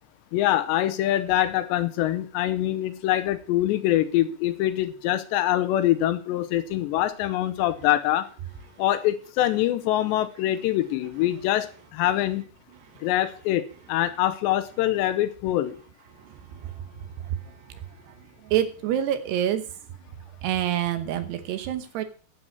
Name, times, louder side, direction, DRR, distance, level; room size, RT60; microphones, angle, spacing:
voice 1, 0.3-8.3 8.8-12.4 13.0-15.8, left 13 dB, 85° left, 3.0 m, -24 dB
voice 2, 16.2-16.7 18.4-19.6 20.4-22.0, right 11 dB, 75° right, 3.1 m, -27 dB
12.5 x 7.9 x 6.1 m
omnidirectional pair, 5.1 m